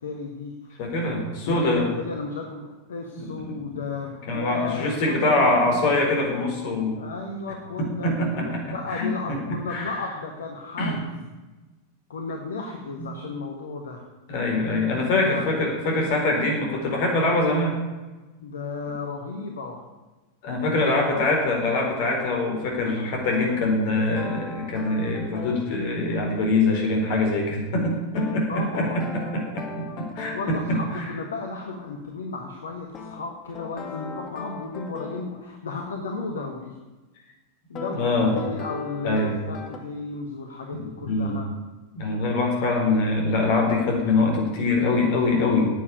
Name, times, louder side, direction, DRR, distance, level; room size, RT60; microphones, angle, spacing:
voice 1, 0.0-0.8 1.4-5.8 7.0-11.1 12.1-14.0 15.3-15.5 18.4-19.8 20.6-21.2 28.5-29.1 30.3-36.7 37.7-41.5, left 3 dB, 65° left, 2 dB, 1.6 m, -34 dB
voice 2, 0.8-1.8 3.2-3.4 4.3-7.0 8.0-8.6 8.9-9.9 10.8-11.0 13.0-13.1 14.3-17.8 20.4-30.8 38.0-38.3 39.0-39.3 40.8-41.3 42.0-45.7, left 2 dB, 50° left, 0 dB, 4.4 m, -24 dB
sound 1, 23.3-25.7 28.2-30.5 32.9-35.3 37.8-38.0 38.4-39.8, left 5 dB, 30° left, 2.0 m, -38 dB
10.0 x 8.7 x 9.7 m, 1.2 s
figure-of-eight pair, 90°, 0 cm